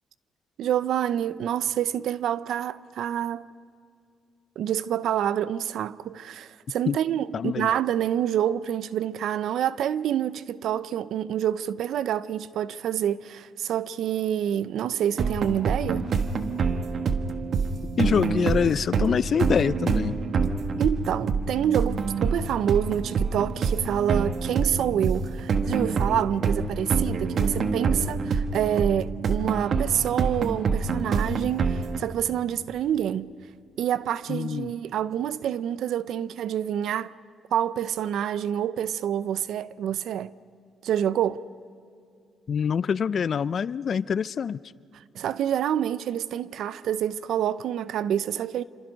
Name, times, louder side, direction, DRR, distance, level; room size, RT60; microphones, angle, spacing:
voice 1, 0.6-3.5 4.6-16.1 20.8-33.3 33.8-37.1 37.5-40.3 40.8-41.4 45.1-48.6, right 10 dB, 75° right, 0.6 m, -27 dB
voice 2, 7.3-7.7 18.0-20.2 34.3-34.7 42.5-44.6, left 7 dB, 50° left, 0.5 m, -25 dB
sound 1, 15.2-32.0, right 5 dB, 55° right, 1.3 m, -26 dB
28.0 x 26.5 x 5.3 m
cardioid pair, 90°, 0 cm